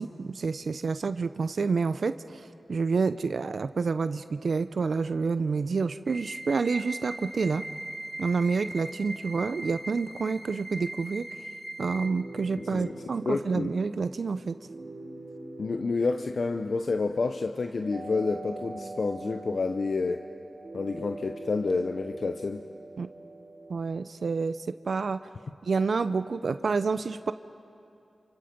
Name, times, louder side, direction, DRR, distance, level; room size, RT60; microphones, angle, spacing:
voice 1, 0.0-2.4 2.7-7.6 8.2-11.3 11.8-14.6 23.0-23.1 23.7-24.6 24.8-25.2 25.6-27.3, right 4 dB, 70° right, 12 dB, 0.6 m, -28 dB
sound 1, 6.1-12.1, right 1 dB, 5° left, 5.6 m, -39 dB
sound 2, 11.8-23.8, right 2 dB, 50° right, 3.5 m, -44 dB
voice 2, 12.6-13.0 13.3-13.7 15.6-20.2 20.7-22.6, left 4 dB, 65° left, 6 dB, 0.8 m, -29 dB
29.0 x 29.0 x 5.3 m, 2.8 s
cardioid pair, 55°, 0 cm